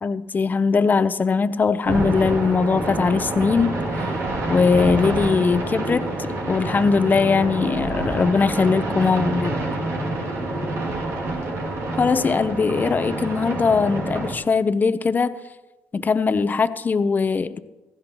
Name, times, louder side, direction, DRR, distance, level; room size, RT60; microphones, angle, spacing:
voice 1, 0.0-3.8 4.5-9.6 12.0-15.4 15.9-17.6, left 5 dB, 35° left, 14 dB, 0.8 m, -20 dB
sound 1, 1.8-14.3, right 2 dB, 65° right, 2.6 m, -27 dB
17.5 x 15.5 x 3.0 m, 1.1 s
supercardioid pair, 60°, 5 cm